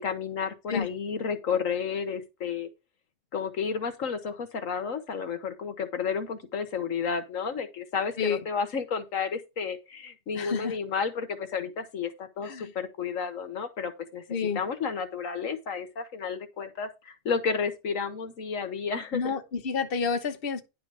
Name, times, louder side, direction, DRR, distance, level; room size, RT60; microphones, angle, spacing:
voice 1, 0.0-2.7 3.3-14.2 14.5-19.3, left 6 dB, 70° left, 1.5 m, -31 dB
voice 2, 10.3-10.8 12.4-12.7 14.3-14.6 19.1-20.6, left 5 dB, 45° left, 1.3 m, -29 dB
10.5 x 3.9 x 6.1 m
omnidirectional pair, 1.4 m